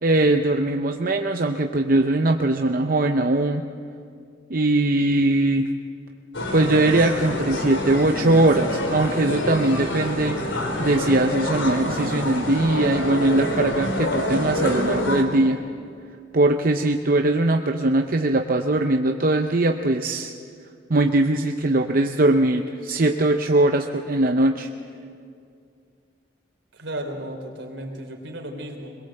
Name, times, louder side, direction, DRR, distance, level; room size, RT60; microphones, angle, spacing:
voice 1, 0.0-3.6 4.5-5.7 6.5-10.4 10.8-15.6 16.3-20.3 20.9-24.7, right 2 dB, 50° right, 5 dB, 0.7 m, -21 dB
sound 1, 6.3-15.2, left 1 dB, 85° left, 2.9 m, -27 dB
voice 2, 26.7-29.0, right 1 dB, 75° right, 3 dB, 3.7 m, -34 dB
22.0 x 21.0 x 7.7 m, 2.3 s
head